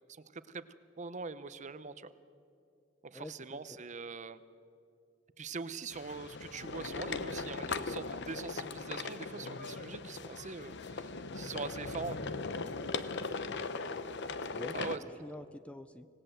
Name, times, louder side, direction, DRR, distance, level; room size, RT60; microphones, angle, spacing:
voice 1, 0.1-0.6 1.0-2.1 3.0-4.4 5.4-12.3 14.7-15.0, right 4 dB, 40° right, 14 dB, 0.7 m, -43 dB
voice 2, 3.1-3.8 13.4-13.7 14.5-14.7 15.2-16.1, left 1 dB, 5° left, 12 dB, 0.4 m, -47 dB
sound 1, 5.9-15.0, left 4 dB, 60° left, 0.9 m, -39 dB
25.5 x 18.5 x 7.8 m, 2.5 s
head